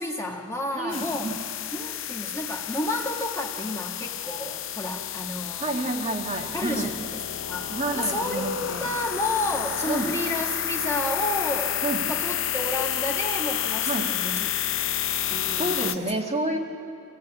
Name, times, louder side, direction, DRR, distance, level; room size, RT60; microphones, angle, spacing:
voice 1, 0.0-1.3 1.7-5.7 6.5-7.2 7.5-11.8 12.1-14.5 15.3-16.1, left 1 dB, 15° left, 0 dB, 1.4 m, -31 dB
voice 2, 0.7-1.3 5.6-6.9 7.7-8.9 9.9-10.1 11.8-12.0 13.9-14.1 15.5-16.6, right 2 dB, 30° right, 2 dB, 1.6 m, -29 dB
sound 1, 0.9-16.0, left 11 dB, 60° left, 0.8 m, -30 dB
26.0 x 16.0 x 9.6 m, 2.7 s
head